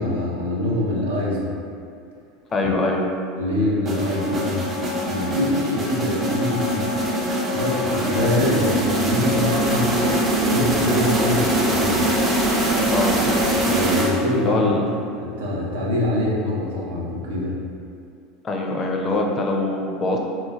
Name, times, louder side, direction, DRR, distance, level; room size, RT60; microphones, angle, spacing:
voice 1, 0.0-1.5 2.6-2.7 3.4-4.7 5.1-6.9 7.5-10.0 10.4-12.0 13.7-14.8 15.2-17.6, left 1 dB, 80° right, -5 dB, 0.5 m, -24 dB
voice 2, 2.5-3.1 12.9-13.7 14.4-14.8 18.4-20.2, left 2 dB, 35° left, 0 dB, 0.4 m, -23 dB
sound 1, 3.8-14.5, right 1 dB, 30° right, 0.5 m, -22 dB
3.1 x 2.1 x 2.3 m, 2.4 s
hypercardioid pair, 85°, 0 cm